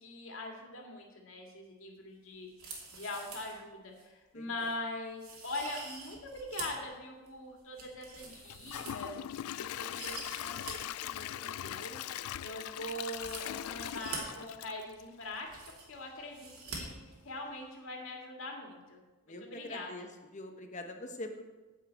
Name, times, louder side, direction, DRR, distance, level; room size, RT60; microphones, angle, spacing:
voice 1, 0.0-2.5 2.9-9.2 9.6-12.0 12.4-16.9 17.2-19.0 19.3-20.1, left 2 dB, 65° left, 1 dB, 2.2 m, -42 dB
sound 1, 2.5-3.6 4.0-4.1 4.6-4.7 5.2-6.8 7.3-9.4 9.8-10.7 11.0-11.1 13.1-14.2 15.0-15.1 15.3-16.0 16.3-16.8 17.1-17.2, right 4 dB, 85° right, 2.7 m, -46 dB
voice 2, 4.3-4.7 19.3-21.5, left 1 dB, 35° left, 5 dB, 1.0 m, -44 dB
Gurgling / Toilet flush / Trickle dribble, 8.5-15.5 15.9-16.0 16.5-16.6, left 11 dB, 85° left, 0.3 m, -41 dB
10.0 x 5.7 x 8.2 m, 1.2 s
head